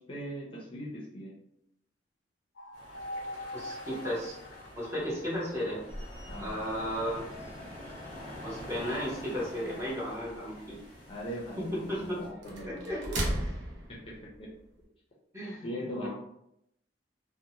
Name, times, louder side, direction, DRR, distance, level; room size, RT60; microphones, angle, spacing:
voice 1, 0.0-1.3 6.3-6.6 11.1-13.0 13.9-14.5 15.6-16.1, equal, 30° left, -4 dB, 0.5 m, -40 dB
sound 1, 2.6-5.7 6.2-10.9, left 1 dB, 85° left, 0.5 m, -46 dB
sound 2, 2.7-12.3, left 1 dB, 45° right, 1.4 m, -47 dB
voice 2, 3.5-4.4 4.7-5.8 6.4-7.2 8.4-10.8 11.6-12.3 12.6-13.2 15.3-15.7 16.0-16.1, equal, 15° right, -5 dB, 0.8 m, -34 dB
sound 3, 5.9-14.8, right 1 dB, 75° right, 0.6 m, -40 dB
2.6 x 2.1 x 2.7 m, 0.77 s
head